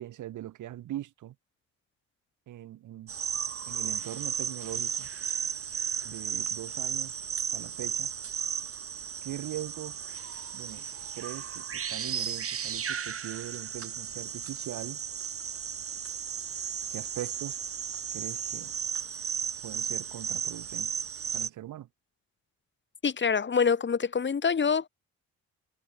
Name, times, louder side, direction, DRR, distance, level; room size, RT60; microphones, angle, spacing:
voice 1, 0.0-1.4 2.5-3.1 3.7-5.1 6.0-7.2 7.5-8.1 9.2-10.0 10.5-10.9 11.2-15.0 16.9-17.6 18.1-18.7 19.6-20.9 21.3-21.9, right 13 dB, 80° right, 5.2 m, -41 dB
sound 1, 3.1-21.5, right 8 dB, 50° right, 2.7 m, -34 dB
voice 2, 23.0-24.9, left 6 dB, 40° left, 2.5 m, -25 dB
cardioid pair, 90°, 30 cm